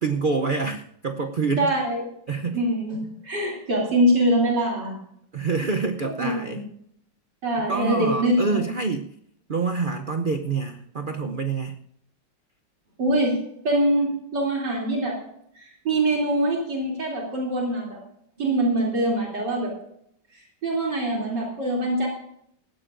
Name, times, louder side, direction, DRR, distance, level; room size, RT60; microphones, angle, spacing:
voice 1, 0.0-1.7 2.3-2.6 5.3-6.6 7.7-9.1 9.5-11.8, right 4 dB, 90° right, 5 dB, 0.4 m, -26 dB
voice 2, 1.6-2.0 2.5-3.0 3.2-4.9 6.0-6.6 7.4-8.6 13.0-13.3 13.6-15.2 15.6-18.0 18.4-19.7 20.6-22.1, right 1 dB, 65° right, -2 dB, 3.7 m, -23 dB
18.0 x 14.5 x 2.6 m, 0.71 s
omnidirectional pair, 2.0 m